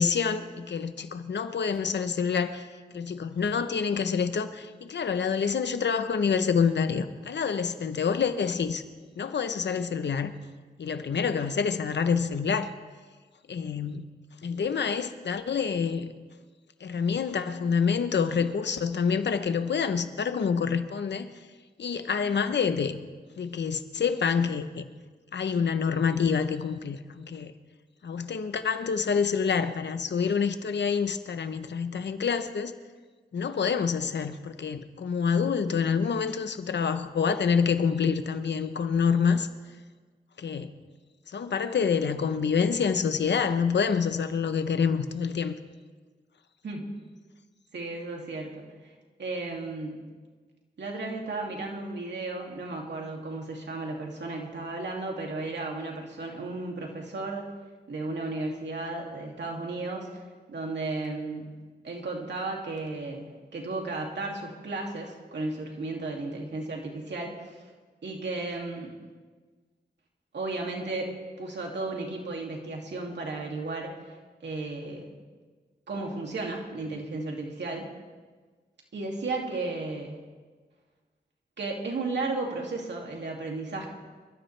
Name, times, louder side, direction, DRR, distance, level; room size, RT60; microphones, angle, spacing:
voice 1, 0.0-2.7 2.9-8.8 9.2-10.3 10.8-12.7 13.5-14.0 14.4-16.1 16.8-21.3 21.8-23.0 23.4-24.8 25.3-27.5 28.0-32.7 33.3-39.5 40.4-40.7 41.3-45.5, left 6 dB, 90° left, 10 dB, 0.9 m, -27 dB
voice 2, 47.7-48.9 49.2-50.0 50.8-57.5 57.9-60.2 60.5-61.5 61.8-63.3 63.5-67.7 68.0-68.9 70.3-73.9 74.4-75.1 75.9-77.9 78.9-80.2 81.6-83.9, right 3 dB, 90° right, 0 dB, 2.5 m, -34 dB
26.5 x 13.0 x 3.4 m, 1.4 s
wide cardioid pair, 65°, 18 cm